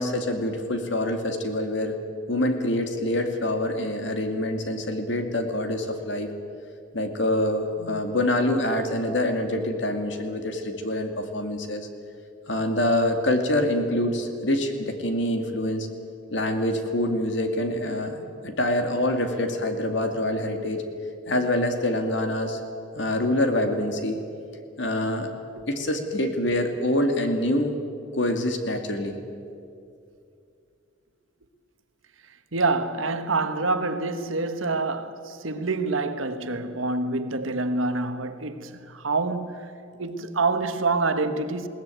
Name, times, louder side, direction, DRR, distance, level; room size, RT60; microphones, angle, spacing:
voice 1, 0.0-2.0 2.3-6.3 6.9-11.9 12.5-15.9 16.3-20.8 21.3-22.6 22.9-24.2 24.8-25.3 25.7-27.8 28.1-29.2, left 1 dB, 65° left, 2.4 m, -25 dB
voice 2, 32.5-39.7 40.0-41.7, right 3 dB, 85° right, 1.3 m, -26 dB
21.0 x 17.5 x 9.2 m
head